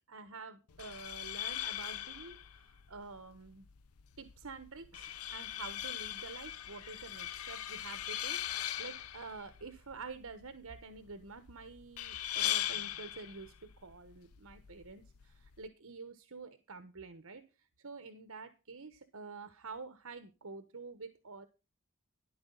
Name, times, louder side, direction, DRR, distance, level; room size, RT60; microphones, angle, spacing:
voice 1, 0.1-3.7 4.2-21.5, right 4 dB, 75° right, 10 dB, 1.2 m, -48 dB
sound 1, 0.7-15.7, left 12 dB, 85° left, 0.6 m, -41 dB
13.5 x 11.0 x 4.0 m, 0.31 s
head